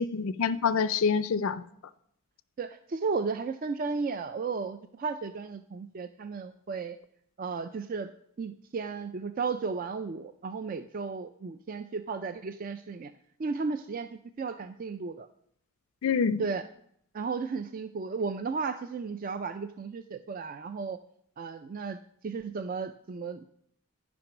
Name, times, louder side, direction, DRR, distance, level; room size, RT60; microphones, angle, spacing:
voice 1, 0.0-1.6 16.0-16.4, left 6 dB, 65° left, 0.4 m, -26 dB
voice 2, 2.6-7.0 7.4-8.1 8.4-13.1 13.4-15.3 16.4-16.6 17.1-21.0 21.4-23.5, right 4 dB, 40° right, 0.3 m, -34 dB
12.0 x 5.2 x 5.9 m
head